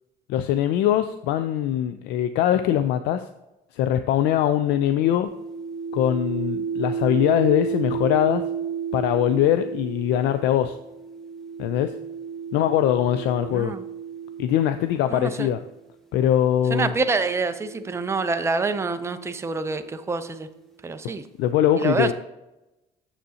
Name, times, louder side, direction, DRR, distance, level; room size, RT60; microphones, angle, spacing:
voice 1, 0.3-3.3 3.7-5.3 5.9-8.4 8.9-10.8 11.6-11.9 12.5-13.7 14.4-15.6 16.1-16.9 21.4-22.1, left 11 dB, 90° left, 10 dB, 0.4 m, -22 dB
sound 1, 5.2-15.6 16.5-20.2, right 7 dB, ahead, 1.0 m, -33 dB
voice 2, 13.5-13.8 15.1-15.5 16.7-20.5 20.8-21.2 21.8-22.1, right 3 dB, 15° right, 9 dB, 0.5 m, -26 dB
7.5 x 6.9 x 2.8 m, 0.96 s
cardioid pair, 110°, 17 cm